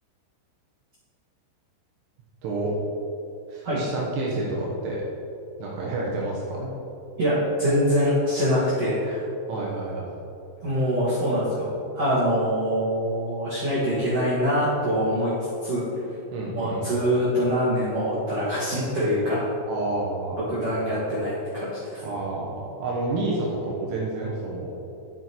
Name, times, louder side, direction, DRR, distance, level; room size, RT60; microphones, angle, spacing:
voice 1, 2.4-2.7 3.5-5.0 5.6-6.6 9.5-10.1 16.3-16.9 19.7-20.4 22.0-24.7, right 2 dB, 75° right, -4 dB, 3.5 m, -29 dB
voice 2, 7.2-9.2 10.6-11.7 11.9-15.3 15.6-15.8 16.5-19.5 20.5-22.0, equal, 60° right, -10 dB, 1.6 m, -24 dB
11.5 x 9.6 x 3.1 m, 2.8 s
omnidirectional pair, 5.9 m